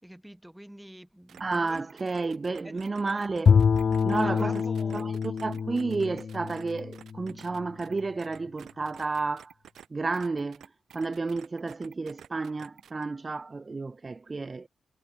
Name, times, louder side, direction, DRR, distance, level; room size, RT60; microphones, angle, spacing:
voice 1, 0.0-1.8 2.1-2.2 2.6-2.8 3.9-5.2, equal, 5° right, 4.8 m, -47 dB
sound 1, 1.3-9.9 10.1-13.0, right 9 dB, 85° right, 7.9 m, -51 dB
voice 2, 1.4-3.6 4.0-9.5 9.9-14.7, right 3 dB, 25° right, 0.7 m, -31 dB
Bowed string instrument, 3.5-7.7, left 6 dB, 50° left, 0.5 m, -26 dB
wide cardioid pair, 140°, 0 cm